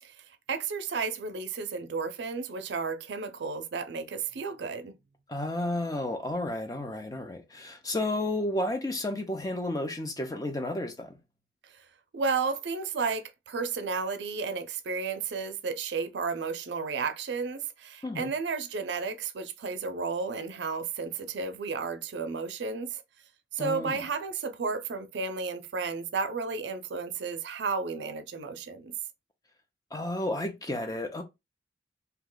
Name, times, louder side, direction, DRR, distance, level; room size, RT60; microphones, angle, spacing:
voice 1, 0.0-5.0 11.6-11.9 12.1-23.0 23.5-28.9, right 4 dB, 70° right, 0.5 m, -33 dB
voice 2, 5.3-11.1 18.0-18.3 23.6-24.0 29.9-31.2, left 1 dB, 20° left, 0.5 m, -32 dB
2.8 x 2.2 x 3.7 m
head